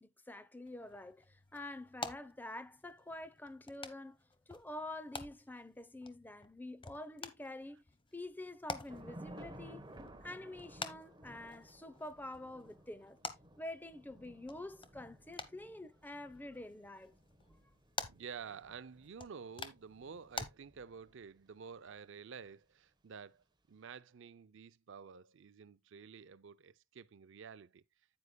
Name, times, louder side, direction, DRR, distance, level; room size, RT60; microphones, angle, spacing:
voice 1, 0.0-4.2 4.5-7.8 8.1-9.9 10.2-13.2 13.6-17.1, left 1 dB, 10° left, 0.7 m, -47 dB
sound 1, 0.6-20.5, left 4 dB, 25° left, 1.1 m, -50 dB
Thunder / Rain, 8.9-21.4, right 1 dB, 20° right, 1.1 m, -56 dB
voice 2, 18.1-27.8, right 6 dB, 65° right, 0.5 m, -50 dB
9.6 x 9.5 x 2.2 m
head